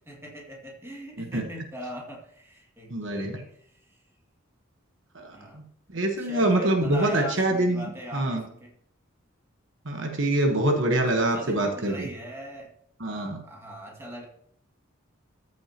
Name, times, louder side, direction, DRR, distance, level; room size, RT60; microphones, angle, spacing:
voice 1, 0.1-4.0 5.3-5.6 6.2-8.7 10.3-10.6 11.2-12.7 13.1-14.3, equal, 15° right, -2 dB, 2.0 m, -40 dB
voice 2, 2.9-3.4 5.1-5.6 5.9-8.4 9.8-12.1 13.0-13.4, right 1 dB, 65° right, 4 dB, 1.2 m, -25 dB
13.5 x 6.3 x 2.9 m, 0.68 s
head